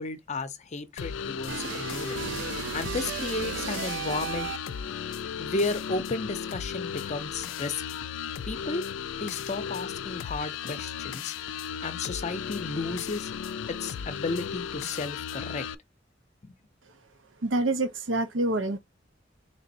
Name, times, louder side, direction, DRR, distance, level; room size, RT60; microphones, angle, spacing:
voice 1, 0.0-2.3 2.7-4.5 5.4-7.8 8.5-8.8 9.2-11.3 11.8-13.3 13.7-15.6 16.4-16.6, left 3 dB, 40° left, 0.6 m, -33 dB
sound 1, 1.0-15.7, left 8 dB, 85° left, 0.3 m, -35 dB
sound 2, 1.5-4.9, right 7 dB, 75° right, 0.4 m, -35 dB
voice 2, 17.4-18.8, right 2 dB, 90° right, 0.8 m, -26 dB
3.3 x 2.5 x 4.1 m
head